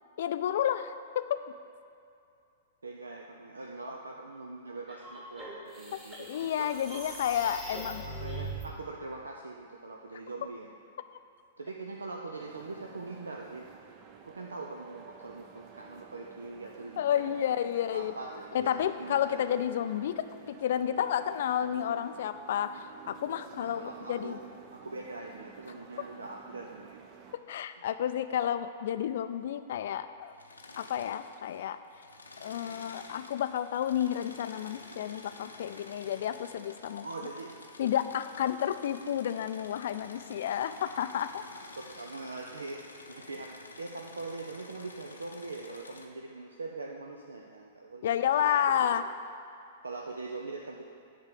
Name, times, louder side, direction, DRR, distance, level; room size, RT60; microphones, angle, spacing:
voice 1, 0.2-1.4 6.2-8.0 17.0-18.1 18.5-20.2 20.5-24.4 27.5-30.3 30.8-31.8 32.4-37.1 37.8-41.4 48.0-49.0, left 10 dB, 55° left, 11 dB, 0.4 m, -31 dB
voice 2, 2.8-6.5 8.0-10.7 11.6-13.7 14.3-17.4 17.9-19.4 23.5-24.4 24.8-27.0 37.0-37.5 41.7-48.6 49.8-50.9, right 3 dB, 75° right, 1 dB, 0.5 m, -42 dB
sound 1, 4.9-8.6, right 2 dB, 20° right, 1.8 m, -41 dB
sound 2, 12.4-27.4, right 7 dB, 35° right, 0.7 m, -52 dB
Engine / Mechanisms, 30.3-31.6 31.9-46.1, left 3 dB, 80° left, 0.7 m, -50 dB
10.5 x 3.6 x 6.8 m, 2.5 s
figure-of-eight pair, 105°, 0 cm